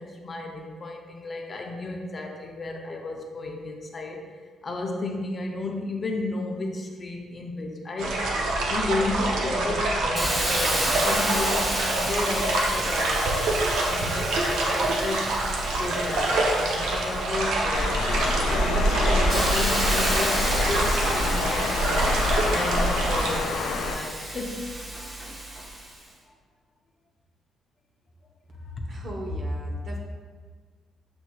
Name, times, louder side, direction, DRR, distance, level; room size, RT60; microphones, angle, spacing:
voice 1, 0.0-4.3 4.6-15.3 15.8-22.0 22.4-24.8, left 2 dB, 40° left, 2 dB, 0.6 m, -33 dB
sound 1, 8.0-23.4, right 2 dB, 85° right, 0.6 m, -26 dB
Hiss, 10.2-17.7 18.2-26.0, right 1 dB, 25° right, 1.0 m, -32 dB
Water, 17.7-23.9, left 1 dB, 85° left, 0.4 m, -26 dB
voice 2, 28.9-30.0, equal, 55° right, -1 dB, 0.9 m, -32 dB
7.0 x 3.0 x 2.3 m, 1.5 s
cardioid pair, 90°, 0 cm